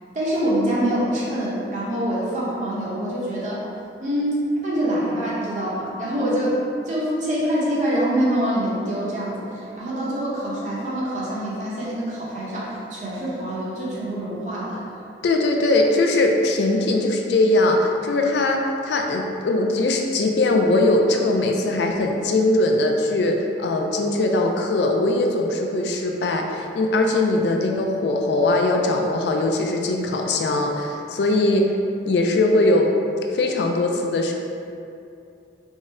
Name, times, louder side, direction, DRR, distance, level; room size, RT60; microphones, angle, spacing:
voice 1, 0.1-3.6 4.0-6.6 6.9-14.8, right 1 dB, 40° right, -7 dB, 0.8 m, -25 dB
voice 2, 15.2-31.7 32.1-32.9 33.3-34.3, left 2 dB, 70° left, 2 dB, 0.3 m, -20 dB
3.6 x 2.1 x 4.1 m, 2.6 s
head